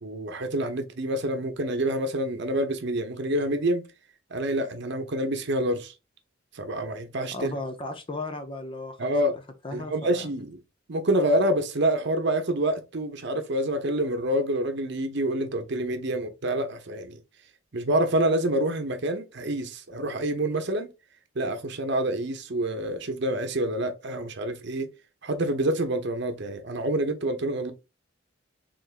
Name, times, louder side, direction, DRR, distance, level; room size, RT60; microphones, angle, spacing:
voice 1, 0.0-3.8 4.3-5.9 6.5-7.5 9.0-9.4 9.7-10.6 10.9-17.2 17.7-20.9 21.3-24.9 25.2-27.7, right 1 dB, 60° right, 0.8 m, -27 dB
voice 2, 7.3-9.1 9.6-10.4, left 2 dB, 25° left, 0.6 m, -35 dB
3.8 x 3.5 x 2.4 m
head